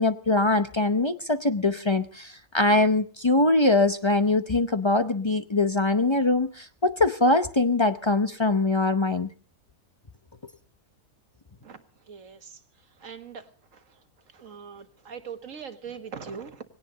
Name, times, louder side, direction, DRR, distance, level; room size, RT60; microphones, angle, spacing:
voice 1, 0.0-9.3, left 2 dB, 30° left, 9 dB, 0.5 m, -23 dB
voice 2, 12.1-12.6 13.0-13.5 13.7-13.8 14.3-16.6, right 6 dB, 60° right, 8 dB, 1.8 m, -41 dB
19.0 x 17.5 x 3.9 m, 0.40 s
omnidirectional pair, 1.6 m